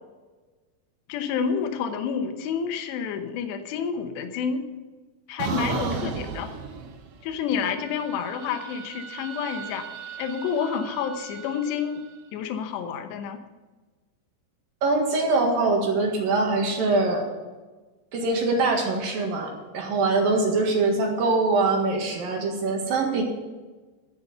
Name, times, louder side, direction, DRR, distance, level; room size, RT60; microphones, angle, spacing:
voice 1, 1.1-4.7 5.3-6.6 7.2-9.9 10.2-12.0 12.3-13.4, left 7 dB, 70° left, 7 dB, 2.9 m, -29 dB
voice 2, 5.4-6.0 14.8-17.3 18.1-23.2, right 3 dB, 60° right, 1 dB, 2.7 m, -23 dB
sound 1, 5.4-7.4 7.7-12.0, right 5 dB, 75° right, 3.8 m, -36 dB
12.0 x 8.7 x 6.8 m, 1.3 s
omnidirectional pair, 5.8 m